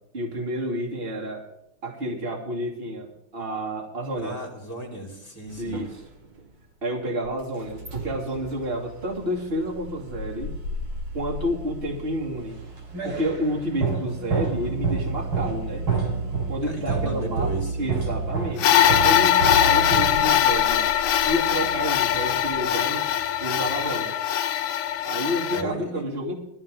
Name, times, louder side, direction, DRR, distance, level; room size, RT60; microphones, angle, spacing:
voice 1, 0.1-1.4 1.8-4.4 5.6-6.0 6.8-10.5 11.1-12.6 13.0-15.8 16.5-17.5 17.8-20.9 21.2-23.1 23.4-24.1 25.0-26.3, equal, 25° right, -2 dB, 2.8 m, -30 dB
voice 2, 4.2-5.8 16.6-18.1 25.5-26.0, right 1 dB, 10° left, -2 dB, 4.1 m, -35 dB
sound 1, 5.5-23.9, equal, 55° right, 3.2 m, -40 dB
sound 2, 12.5-20.6, right 4 dB, 75° right, 4.2 m, -28 dB
sound 3, 18.6-25.6, left 11 dB, 80° left, 1.6 m, -21 dB
20.0 x 14.0 x 3.8 m, 0.78 s
omnidirectional pair, 2.4 m